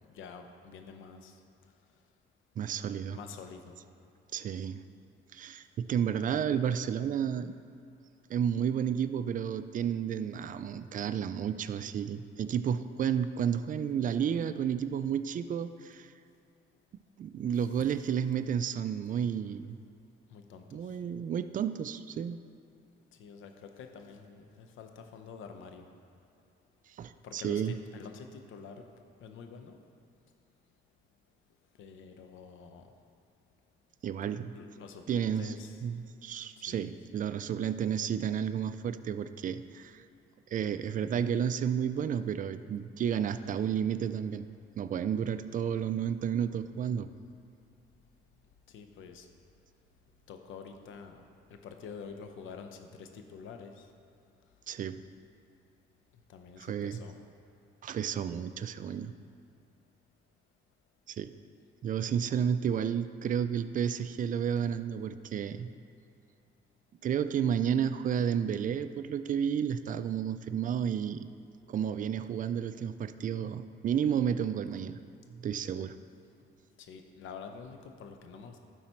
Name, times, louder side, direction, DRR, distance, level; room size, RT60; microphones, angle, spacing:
voice 1, 0.1-1.3 3.1-3.8 17.5-17.9 20.3-20.8 23.2-25.9 27.2-28.8 29.2-29.8 31.8-32.9 34.5-35.8 36.7-37.0 48.7-49.3 50.3-51.2 51.5-53.9 56.3-57.1 76.8-78.6, left 5 dB, 80° left, 6 dB, 0.7 m, -47 dB
voice 2, 2.6-3.2 4.3-4.8 5.3-7.6 8.3-16.1 17.2-19.8 20.7-22.4 27.0-27.8 34.0-34.5 35.1-35.5 35.8-40.0 40.5-44.5 44.8-47.1 54.7-55.0 56.6-57.0 57.8-59.1 61.1-61.3 61.8-65.7 67.0-71.3 71.7-75.0 75.3-76.0, right 8 dB, 40° right, 11 dB, 0.4 m, -31 dB
11.5 x 4.2 x 4.5 m, 2.5 s
cardioid pair, 90°, 20 cm